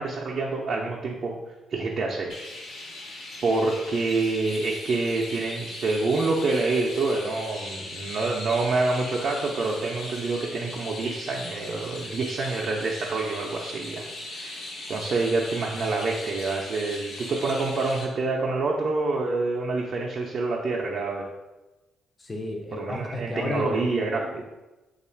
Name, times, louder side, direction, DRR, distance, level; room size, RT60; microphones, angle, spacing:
voice 1, 0.0-1.4 1.7-2.3 3.4-14.0 14.3-21.2 22.7-24.4, right 3 dB, 55° right, -2 dB, 0.5 m, -27 dB
Chirp tweet, 2.3-18.0, left 2 dB, 70° left, 0.8 m, -38 dB
voice 2, 22.2-23.8 24.4-24.5, left 2 dB, 25° left, 1 dB, 0.4 m, -32 dB
3.1 x 2.4 x 4.3 m, 1.1 s
cardioid pair, 90°, 0 cm